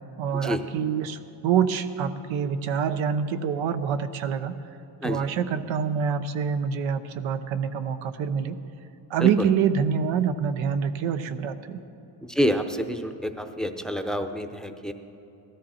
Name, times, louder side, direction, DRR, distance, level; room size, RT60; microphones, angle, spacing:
voice 1, 0.2-4.6 5.0-8.6 9.1-11.8, right 7 dB, 90° right, 10 dB, 0.9 m, -26 dB
voice 2, 12.2-14.9, equal, ahead, 7 dB, 0.6 m, -28 dB
18.5 x 13.5 x 4.3 m, 2.9 s
cardioid pair, 125°, 45 cm